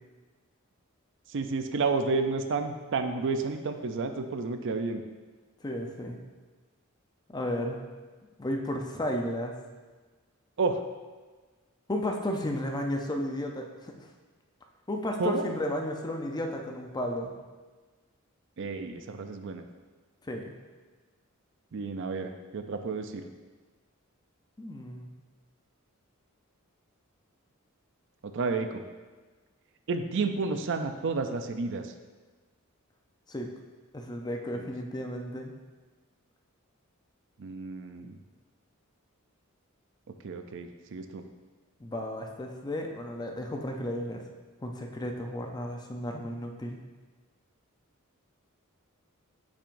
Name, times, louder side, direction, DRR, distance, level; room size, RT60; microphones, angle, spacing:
voice 1, 1.3-5.0 10.6-10.8 15.2-15.5 18.6-19.6 21.7-23.3 28.2-28.8 29.9-31.9 34.5-34.7 37.4-38.2 40.2-41.2, right 4 dB, 60° right, 7 dB, 0.5 m, -31 dB
voice 2, 5.6-6.2 7.3-7.8 8.4-9.5 11.9-14.0 14.9-17.3 20.3-20.5 24.6-25.1 33.3-33.5 33.9-35.5 41.8-44.2 44.6-46.8, left 1 dB, 20° left, 2 dB, 0.6 m, -33 dB
8.3 x 6.1 x 2.6 m, 1.3 s
head